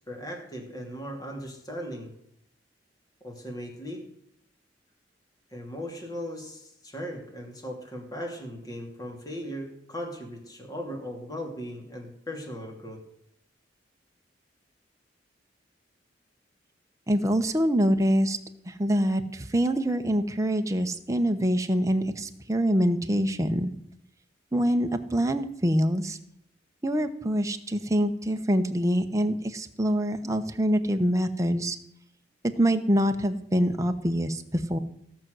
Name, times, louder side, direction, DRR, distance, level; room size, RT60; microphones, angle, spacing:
voice 1, 0.0-2.2 3.2-4.1 5.5-13.1, equal, 20° left, 1 dB, 2.7 m, -38 dB
voice 2, 17.1-18.4 18.7-23.7 24.5-26.2 26.8-31.8 32.6-34.8, equal, 20° right, 6 dB, 0.9 m, -25 dB
16.0 x 6.1 x 7.9 m, 0.75 s
head